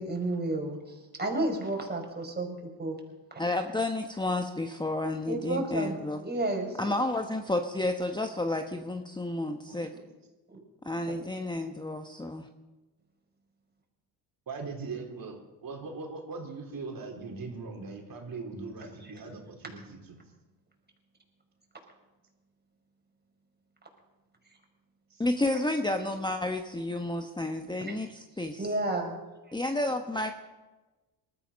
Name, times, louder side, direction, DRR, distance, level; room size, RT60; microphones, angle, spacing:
voice 1, 0.0-3.0 5.3-5.9 6.2-7.0 10.5-10.6 27.9-28.0 28.6-29.2, right 2 dB, 20° right, 2 dB, 5.2 m, -31 dB
voice 2, 3.4-6.2 6.8-9.9 10.8-12.5 25.2-28.6 29.5-30.3, left 2 dB, 10° left, 6 dB, 1.2 m, -31 dB
voice 3, 9.7-10.0 14.5-20.2 25.1-25.2, right 4 dB, 45° right, 2 dB, 4.2 m, -40 dB
20.0 x 14.0 x 5.3 m, 1.1 s
supercardioid pair, 75°, 46 cm